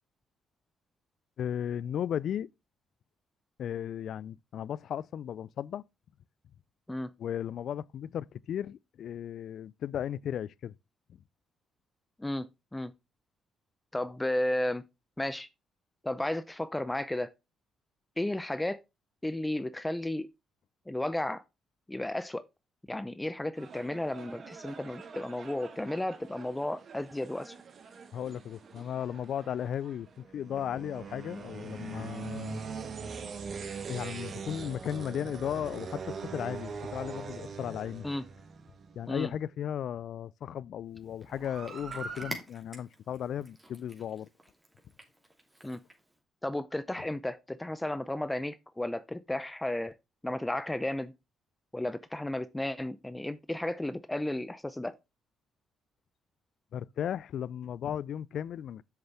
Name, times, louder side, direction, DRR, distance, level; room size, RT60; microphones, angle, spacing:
voice 1, 1.4-2.5 3.6-5.8 7.2-10.7 28.1-32.6 33.9-38.1 39.0-44.3 56.7-58.8, left 9 dB, 65° left, 0.3 m, -35 dB
voice 2, 13.9-14.8 15.2-15.5 16.0-17.3 18.2-18.8 19.2-20.3 20.9-21.4 21.9-22.4 22.9-27.6 38.0-38.2 39.1-39.3 45.6-45.8 46.4-49.9 50.2-51.1 51.7-55.0, left 1 dB, 10° left, 0.6 m, -33 dB
sound 1, 23.5-39.2 41.2-42.3, right 5 dB, 55° right, 1.4 m, -43 dB
Cat, 41.0-46.2, right 1 dB, 15° right, 2.8 m, -48 dB
8.0 x 6.7 x 3.4 m
supercardioid pair, 55°, 0 cm